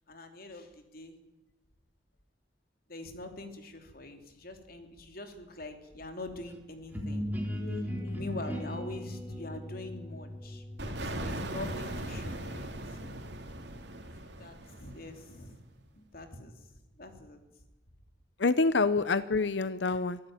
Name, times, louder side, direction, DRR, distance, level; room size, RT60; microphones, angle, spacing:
voice 1, 0.1-1.2 2.9-7.3 7.7-7.9 8.1-13.2 14.2-15.6 15.9-16.7 17.0-17.4, left 2 dB, 55° left, 6 dB, 3.2 m, -44 dB
sound 1, 6.9-12.6, equal, 10° right, 3.6 m, -38 dB
voice 2, 7.6-8.2 18.4-20.2, left 3 dB, 75° left, 15 dB, 0.8 m, -28 dB
sound 2, 10.8-15.4, right 1 dB, 65° right, 3.2 m, -39 dB
24.0 x 15.5 x 9.2 m, 1.1 s
head